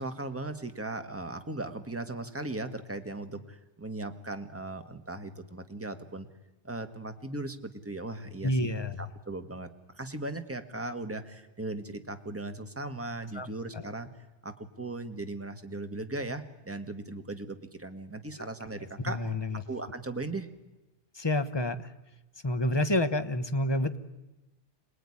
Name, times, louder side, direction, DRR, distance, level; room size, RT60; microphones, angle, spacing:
voice 1, 0.0-6.3 6.6-14.1 14.4-19.3 19.7-20.5, right 2 dB, 10° right, 7 dB, 1.6 m, -38 dB
voice 2, 8.4-9.1 13.3-13.5 13.7-13.9 19.0-19.6 21.1-21.9 22.4-24.0, left 1 dB, 25° left, 10 dB, 1.2 m, -29 dB
27.0 x 19.5 x 9.9 m, 1.1 s
omnidirectional pair, 1.1 m